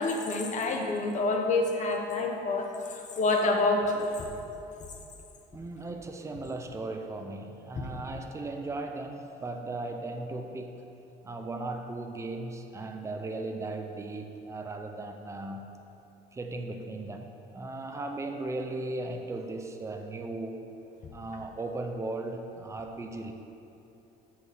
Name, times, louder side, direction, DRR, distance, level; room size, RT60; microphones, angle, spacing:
voice 1, 0.0-4.0 7.8-7.9, left 3 dB, 45° left, 2 dB, 1.0 m, -27 dB
voice 2, 5.5-10.8 11.2-15.8 16.3-20.6 21.1-23.3, right 2 dB, 15° right, 5 dB, 0.6 m, -37 dB
6.3 x 5.6 x 6.2 m, 2.9 s
cardioid pair, 110°, 17 cm